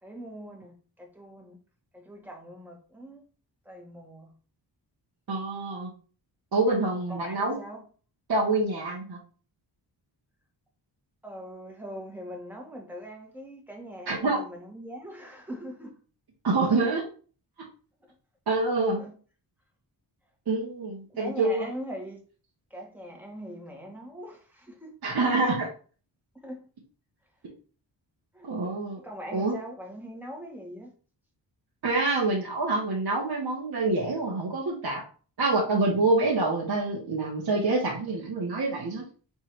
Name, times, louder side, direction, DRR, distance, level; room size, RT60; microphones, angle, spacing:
voice 1, 0.0-1.6 1.9-3.2 3.6-4.3 6.9-7.8 11.2-16.0 16.8-16.9 19.0-19.1 21.1-22.2 22.7-25.0 26.4-26.6 28.3-28.5 29.0-30.9, equal, 5° right, 1.7 m, -41 dB
voice 2, 5.3-5.9 6.5-7.6 8.3-9.2 14.1-14.4 16.4-17.0 18.5-19.0 20.5-21.7 25.0-25.7 28.4-29.0 29.3-29.5 31.8-35.0 35.4-39.0, right 3 dB, 55° right, 1.3 m, -26 dB
3.5 x 3.1 x 4.5 m
cardioid pair, 65°, 45 cm